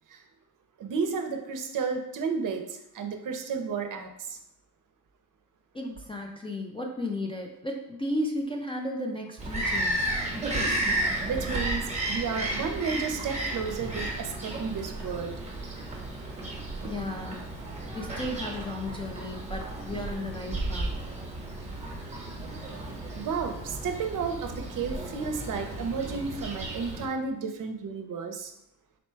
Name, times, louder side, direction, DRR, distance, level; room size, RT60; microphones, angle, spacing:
voice 1, 0.8-4.4 11.3-15.4 23.1-28.5, right 5 dB, 60° right, 5 dB, 0.6 m, -32 dB
voice 2, 5.7-10.1 16.9-17.5 17.9-21.1, left 1 dB, 15° left, 1 dB, 0.3 m, -34 dB
Bird vocalization bird call bird song, 9.4-27.1, right 1 dB, 20° right, 0.9 m, -33 dB
4.1 x 2.2 x 4.4 m, 0.80 s
wide cardioid pair, 140°, 36 cm